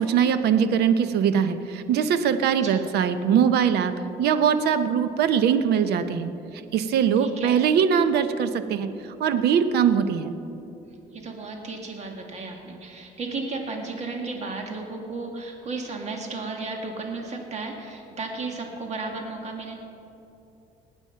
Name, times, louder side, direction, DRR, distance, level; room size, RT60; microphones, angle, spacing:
voice 1, 0.0-3.9 4.2-6.3 6.7-8.9 9.2-10.3, right 7 dB, 75° right, 11 dB, 0.8 m, -21 dB
voice 2, 7.2-7.6 11.1-19.7, right 3 dB, 40° right, 2 dB, 2.0 m, -34 dB
19.0 x 9.0 x 5.7 m, 2.8 s
cardioid pair, 110°, 17 cm